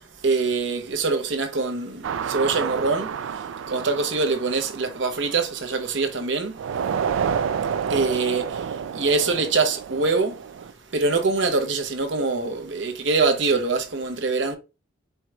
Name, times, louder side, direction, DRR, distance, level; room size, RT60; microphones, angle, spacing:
voice 1, 0.2-6.6 7.9-10.4 10.9-14.6, right 3 dB, 65° right, 0.8 m, -24 dB
sound 1, 2.0-6.0 6.6-10.7, right 7 dB, 80° right, 0.4 m, -29 dB
4.5 x 4.2 x 2.3 m
head